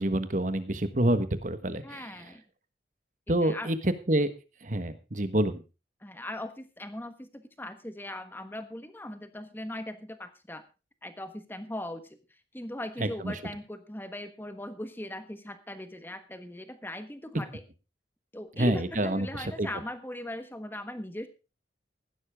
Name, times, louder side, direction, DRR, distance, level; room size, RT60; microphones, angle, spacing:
voice 1, 0.0-2.1 3.3-4.3 4.6-5.6 13.0-13.3 18.6-19.7, right 1 dB, 45° right, 11 dB, 1.4 m, -27 dB
voice 2, 1.8-2.4 3.4-3.7 6.0-10.6 11.0-12.2 12.5-17.6 18.3-21.3, left 1 dB, 10° left, 9 dB, 1.3 m, -39 dB
15.5 x 12.0 x 3.6 m, 0.30 s
head